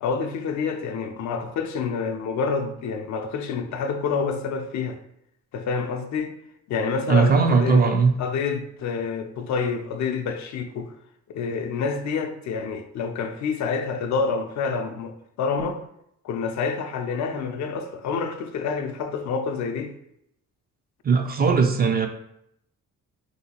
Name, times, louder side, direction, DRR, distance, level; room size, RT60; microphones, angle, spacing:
voice 1, 0.0-5.0 5.5-6.3 6.7-7.9 8.2-10.9 11.3-15.8 16.2-19.9, left 5 dB, 70° left, 0.5 m, -28 dB
voice 2, 7.1-8.1 21.0-22.1, right 5 dB, 30° right, 0.4 m, -19 dB
3.2 x 2.7 x 2.8 m
cardioid pair, 90°, 30 cm